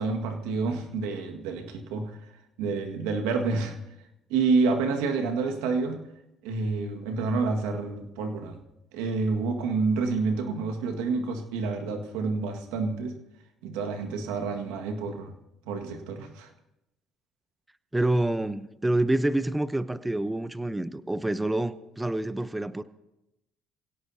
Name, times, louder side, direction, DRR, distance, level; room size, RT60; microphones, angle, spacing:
voice 1, 0.0-2.2 2.6-3.8 4.3-6.0 6.4-8.6 8.9-13.2 13.6-15.3 15.7-16.5, right 4 dB, 90° right, 4 dB, 1.8 m, -28 dB
voice 2, 17.9-22.8, right 1 dB, 10° right, 13 dB, 0.8 m, -27 dB
26.5 x 17.0 x 2.8 m, 0.90 s
supercardioid pair, 80°, 0 cm